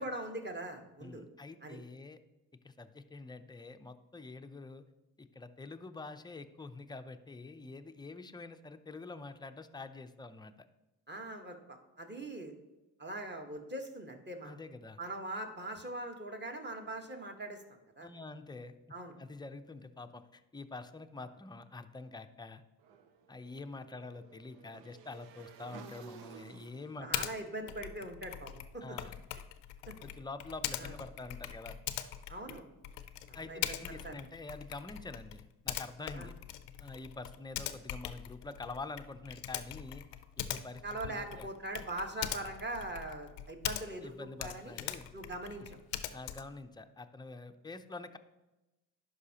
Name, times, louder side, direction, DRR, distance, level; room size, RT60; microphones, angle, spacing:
voice 1, 0.0-1.2 1.6-1.8 11.1-12.5 13.0-14.6 15.0-18.1 18.9-19.2 27.0-28.8 29.9-30.0 30.8-30.9 32.3-32.7 33.3-33.8 34.0-34.1 36.2-36.3 40.8-44.7 45.1-45.8, right 1 dB, 25° right, 3 dB, 1.3 m, -41 dB
voice 2, 1.0-2.2 2.6-4.8 5.2-10.5 14.4-15.0 18.0-18.8 19.2-22.6 23.3-27.1 28.8-29.2 30.0-31.8 33.3-36.3 36.8-40.0 40.4-41.5 44.0-45.1 46.1-48.2, left 3 dB, 10° left, 9 dB, 0.5 m, -46 dB
Motorcycle / Engine, 22.8-28.9, right 7 dB, 85° right, 0.7 m, -55 dB
Typing, 27.1-27.3 27.7-44.1 44.4-46.6, left 12 dB, 85° left, 0.6 m, -42 dB
11.0 x 4.8 x 2.8 m, 1.0 s
supercardioid pair, 55°, 43 cm